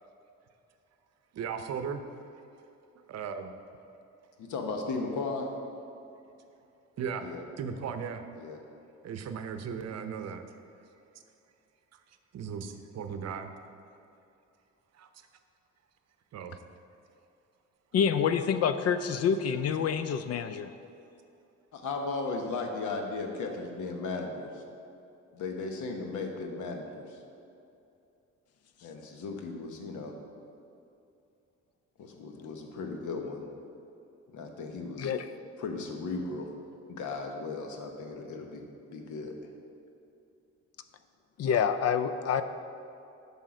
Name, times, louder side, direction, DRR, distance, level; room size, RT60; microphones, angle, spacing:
voice 1, 1.3-2.0 3.1-3.5 7.0-7.3 7.6-8.2 9.0-10.4 12.3-13.5 15.0-15.1 16.3-16.6, right 6 dB, 60° right, 8 dB, 0.7 m, -36 dB
voice 2, 4.4-5.5 7.2-7.4 8.4-8.6 21.7-24.6 25.3-27.2 28.8-30.1 32.0-33.4 34.3-35.1 35.6-36.5 36.9-39.3, left 3 dB, 75° left, 3 dB, 1.1 m, -36 dB
voice 3, 17.9-20.7 35.0-35.3 41.4-42.4, left 7 dB, 55° left, 11 dB, 0.4 m, -27 dB
7.4 x 5.6 x 4.9 m, 2.7 s
cardioid pair, 90°, 30 cm